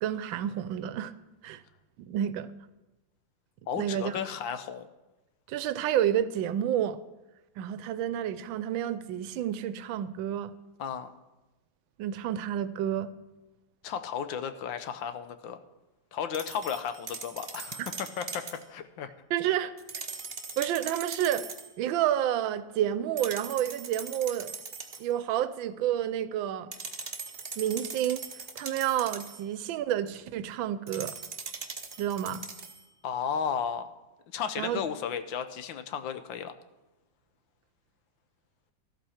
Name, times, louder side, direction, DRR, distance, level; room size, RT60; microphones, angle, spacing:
voice 1, 0.0-1.1 1.4-1.6 2.0-2.5 3.8-4.2 5.5-7.0 7.6-10.5 12.0-13.1 19.3-19.7 20.6-21.5 21.8-24.5 25.0-26.7 27.6-28.2 28.6-31.2 32.0-32.4 34.6-34.8, right 11 dB, 85° right, 14 dB, 1.4 m, -29 dB
voice 2, 3.7-4.9 10.8-11.1 13.8-15.6 16.1-19.1 33.0-33.9 34.3-36.5, left 7 dB, 80° left, 10 dB, 1.5 m, -34 dB
sound 1, 16.3-18.6 19.8-21.7 23.2-25.1 26.7-29.4 30.9-32.8, right 5 dB, 40° right, 1.0 m, -40 dB
13.5 x 12.5 x 4.3 m, 1.1 s
omnidirectional pair, 2.1 m